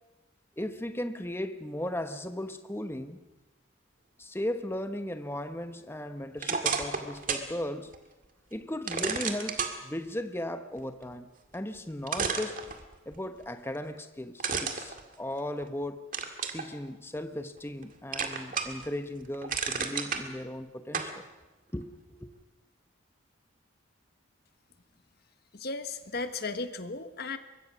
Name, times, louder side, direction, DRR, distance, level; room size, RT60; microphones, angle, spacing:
voice 1, 0.6-3.2 4.2-7.9 8.5-12.6 13.1-16.1 16.5-21.3 21.7-22.3, left 1 dB, 10° left, 1.1 m, -36 dB
sound 1, 6.4-7.5 7.9-8.0 8.9-9.7 11.5-11.6 12.1-13.2 14.4-15.7 16.1-16.6 17.2-17.8 18.1-18.9 19.2-20.2 20.9-21.1, right 6 dB, 40° right, 2.0 m, -31 dB
voice 2, 25.5-27.4, left 3 dB, 50° left, 1.4 m, -35 dB
24.5 x 22.0 x 6.3 m
head